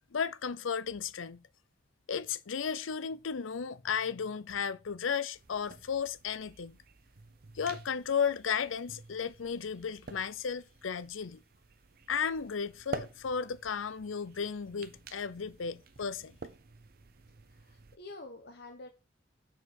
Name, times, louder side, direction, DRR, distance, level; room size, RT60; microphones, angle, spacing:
voice 1, 0.1-1.4 2.1-6.8 7.5-11.4 12.1-16.3, left 6 dB, 85° left, 0.6 m, -34 dB
sound 1, 5.3-18.0, right 3 dB, 50° right, 0.7 m, -49 dB
voice 2, 17.6-18.9, left 2 dB, 55° left, 1.0 m, -47 dB
7.2 x 4.5 x 6.4 m
head